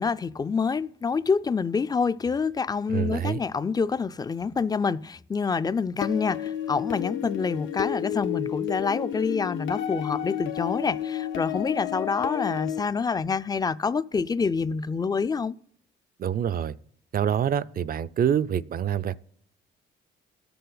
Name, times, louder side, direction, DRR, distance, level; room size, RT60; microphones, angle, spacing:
voice 1, 0.0-15.6, left 5 dB, 20° left, 0.4 m, -27 dB
voice 2, 2.9-3.4 16.2-16.7 17.1-19.2, right 9 dB, 45° right, 0.5 m, -26 dB
sound 1, 6.0-12.8, left 10 dB, 75° left, 0.9 m, -31 dB
20.0 x 6.8 x 3.9 m
cardioid pair, 90°, 20 cm